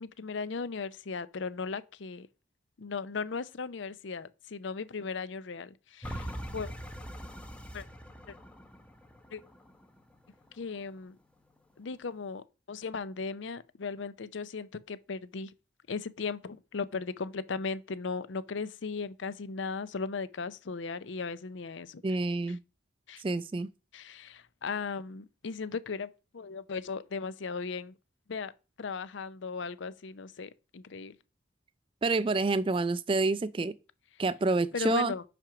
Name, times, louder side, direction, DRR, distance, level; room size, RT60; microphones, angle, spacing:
voice 1, 0.0-2.3 2.8-6.7 7.7-7.8 8.3-8.4 9.3-9.4 10.5-11.2 11.8-15.5 15.9-22.0 23.1-23.2 23.9-27.9 28.3-28.5 28.8-31.2 34.7-35.2, left 4 dB, 70° left, 0.5 m, -37 dB
sound 1, 6.0-11.1 11.6-11.7, equal, 5° left, 0.7 m, -43 dB
voice 2, 22.0-22.6 23.2-23.7 32.0-33.7 34.2-35.1, right 3 dB, 25° right, 0.3 m, -28 dB
5.9 x 5.1 x 5.8 m
head